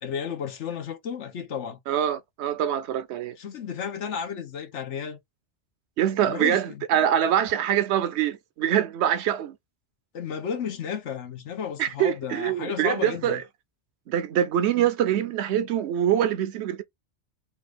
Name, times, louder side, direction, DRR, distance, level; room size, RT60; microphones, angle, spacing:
voice 1, 0.0-1.8 3.4-5.2 6.3-6.8 10.1-13.4, left 7 dB, 85° left, 1.3 m, -33 dB
voice 2, 1.9-3.4 6.0-9.6 11.8-13.4 14.1-16.8, right 10 dB, 70° right, 0.9 m, -24 dB
3.4 x 2.4 x 3.3 m
omnidirectional pair, 1.2 m